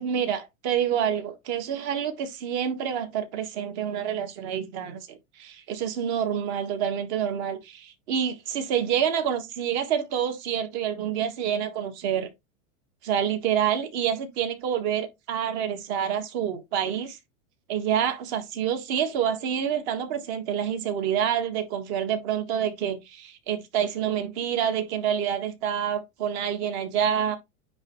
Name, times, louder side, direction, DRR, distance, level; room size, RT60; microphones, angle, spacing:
voice 1, 0.0-12.3 13.0-17.2 17.7-27.4, right 8 dB, 50° right, 1.7 m, -27 dB
9.8 x 3.5 x 3.1 m
supercardioid pair, 155°, 43 cm